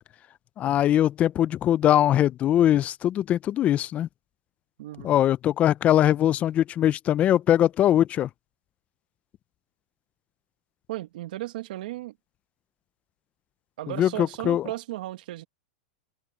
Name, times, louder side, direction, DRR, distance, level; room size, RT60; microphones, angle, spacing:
voice 1, 0.6-4.1 5.0-8.3 14.0-14.6, left 11 dB, 30° left, 0.5 m, -21 dB
voice 2, 4.8-5.1 10.9-12.2 13.8-15.4, right 16 dB, 70° right, 1.8 m, -35 dB
open air
supercardioid pair, 135°, 5 cm